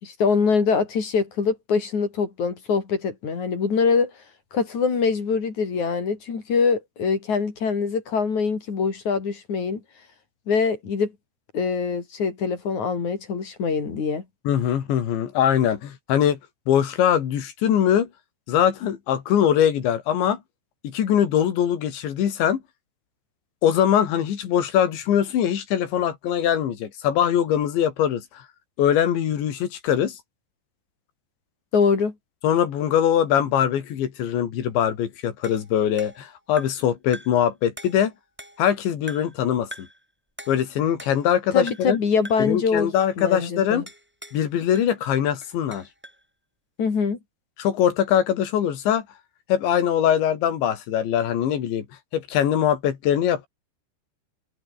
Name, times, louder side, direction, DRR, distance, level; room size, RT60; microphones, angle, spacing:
voice 1, 0.0-4.1 4.5-9.8 10.5-11.1 11.5-14.2 31.7-32.1 41.5-43.8 46.8-47.2, left 5 dB, 45° left, 4.8 m, -23 dB
voice 2, 14.5-16.4 16.7-18.1 18.5-20.4 20.8-22.6 23.6-28.2 28.8-30.2 32.4-38.1 38.6-39.7 40.5-42.0 42.4-43.9 44.3-45.9 47.6-49.1 49.5-51.8 52.1-53.5, left 9 dB, 85° left, 5.1 m, -22 dB
sound 1, 35.4-36.9 37.1-37.5 37.8-38.7 39.1-39.4 39.7-40.0 40.4-41.4 41.7-42.0 42.3-42.6 43.9-44.5 44.8-46.2, equal, ahead, 7.5 m, -43 dB
omnidirectional pair, 5.1 m